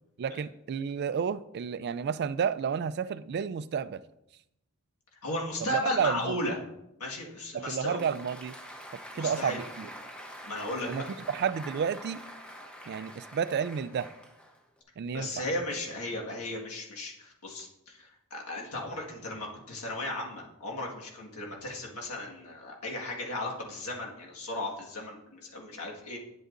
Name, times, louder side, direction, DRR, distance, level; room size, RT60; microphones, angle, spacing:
voice 1, 0.2-4.0 5.6-6.3 7.5-8.5 9.1-9.9 10.9-12.2 12.9-14.1 15.0-15.4, right 7 dB, 50° right, 15 dB, 0.3 m, -31 dB
voice 2, 5.2-6.6 7.0-8.1 9.1-9.6 10.4-10.9 15.1-26.2, left 1 dB, 80° left, -1 dB, 1.6 m, -35 dB
Applause, 7.7-14.8, equal, 5° left, 0.8 m, -45 dB
9.7 x 8.0 x 2.5 m, 0.84 s
head